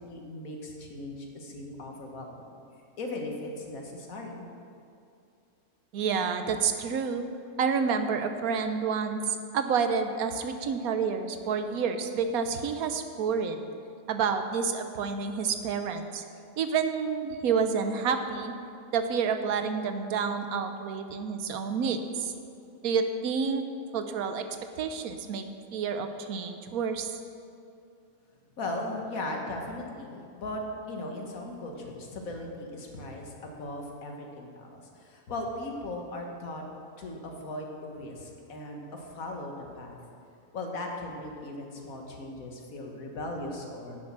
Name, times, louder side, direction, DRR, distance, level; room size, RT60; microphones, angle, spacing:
voice 1, 0.0-2.5 3.0-4.5 28.6-36.6 37.0-40.0 40.5-44.0, left 1 dB, 75° left, 1 dB, 1.7 m, -38 dB
voice 2, 5.9-7.2 7.6-13.6 14.1-16.2 16.6-18.5 18.9-22.3 22.8-23.7 23.9-24.4 24.8-25.4 25.7-27.1, right 6 dB, 85° right, 8 dB, 1.2 m, -29 dB
9.7 x 7.3 x 6.1 m, 2.5 s
omnidirectional pair, 1.5 m